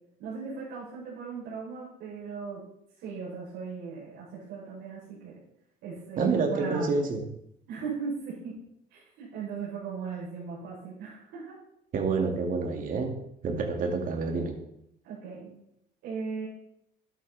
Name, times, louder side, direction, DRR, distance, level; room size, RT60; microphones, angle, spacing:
voice 1, 0.2-2.6 3.0-5.4 5.8-7.0 7.7-8.5 8.9-11.5 15.0-15.5 16.0-16.5, right 5 dB, 90° right, -8 dB, 6.6 m, -38 dB
voice 2, 6.2-7.2 11.9-13.1 13.4-14.5, right 4 dB, 55° right, 3 dB, 2.6 m, -28 dB
12.5 x 12.0 x 4.3 m, 0.77 s
cardioid pair, 110°, 17 cm